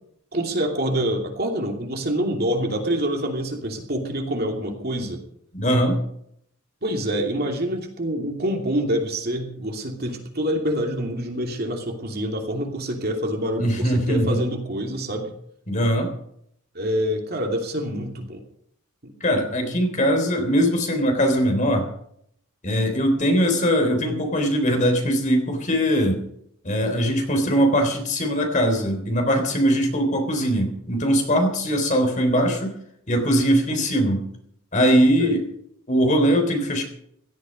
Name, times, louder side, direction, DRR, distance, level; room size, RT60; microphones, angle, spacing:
voice 1, 0.3-5.2 6.8-15.3 16.7-18.4 19.0-19.1 35.2-35.4, equal, 45° right, 2 dB, 2.8 m, -26 dB
voice 2, 5.5-6.0 13.6-14.4 15.7-16.1 19.2-21.9 22.6-26.2 26.6-32.7 33.1-34.2 34.7-35.5 35.9-36.8, equal, 35° left, 4 dB, 3.6 m, -21 dB
17.0 x 12.5 x 5.3 m, 0.70 s
head